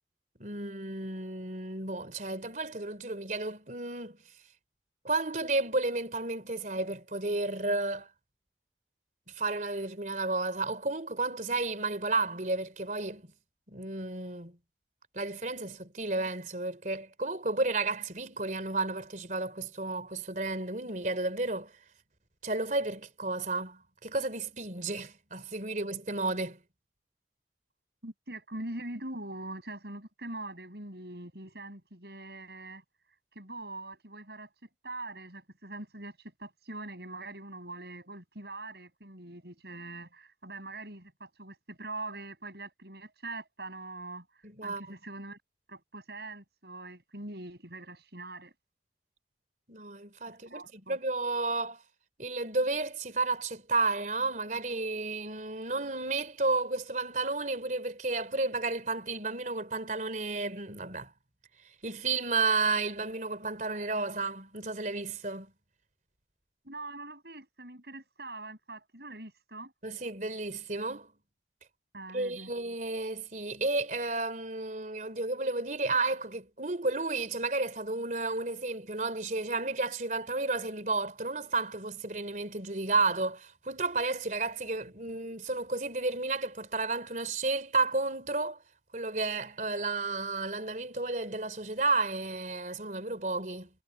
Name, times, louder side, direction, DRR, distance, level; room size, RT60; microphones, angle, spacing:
voice 1, 0.4-4.2 5.0-8.1 9.3-13.3 13.7-14.6 15.1-21.7 22.4-26.6 44.4-45.0 49.7-51.8 52.2-61.1 61.8-65.5 69.8-71.1 72.1-88.6 88.9-93.7, right 3 dB, 45° right, 3.8 m, -32 dB
voice 2, 28.0-32.8 33.3-45.4 45.7-48.5 50.3-51.0 66.6-69.7 71.9-72.5 84.8-84.9, right 2 dB, 65° right, 7.7 m, -43 dB
head